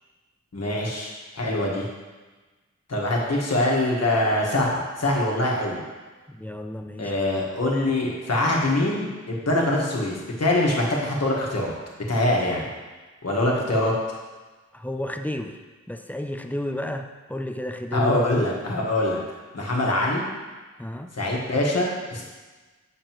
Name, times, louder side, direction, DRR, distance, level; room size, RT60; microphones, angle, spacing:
voice 1, 0.5-1.9 2.9-5.8 7.0-11.7 12.1-12.6 13.2-13.9 17.9-19.2 19.5-20.2 21.1-22.2, left 1 dB, 60° left, -3 dB, 1.5 m, -24 dB
voice 2, 6.3-7.2 14.7-15.6 15.9-18.1 20.8-21.1, left 1 dB, 5° left, 6 dB, 0.4 m, -32 dB
7.5 x 6.5 x 3.0 m, 1.3 s
wide cardioid pair, 85°, 29 cm